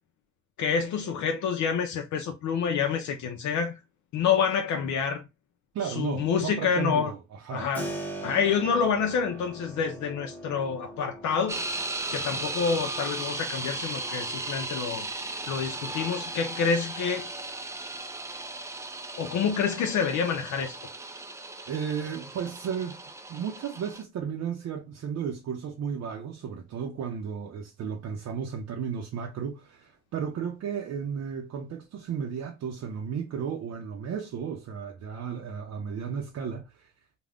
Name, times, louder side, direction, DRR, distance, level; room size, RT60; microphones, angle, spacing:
voice 1, 0.6-3.8 4.1-5.2 5.8-7.1 7.5-7.9 8.2-11.6 12.1-15.1 15.5-17.3 19.2-20.7, left 6 dB, 75° left, 0.5 m, -27 dB
voice 2, 5.7-7.7 21.7-23.0 23.3-36.9, right 7 dB, 60° right, 0.6 m, -34 dB
Keyboard (musical), 7.7-18.4, right 1 dB, 5° left, 0.8 m, -44 dB
sound 1, 11.5-24.0, right 2 dB, 10° right, 0.3 m, -36 dB
2.4 x 2.1 x 3.3 m
cardioid pair, 90°, 30 cm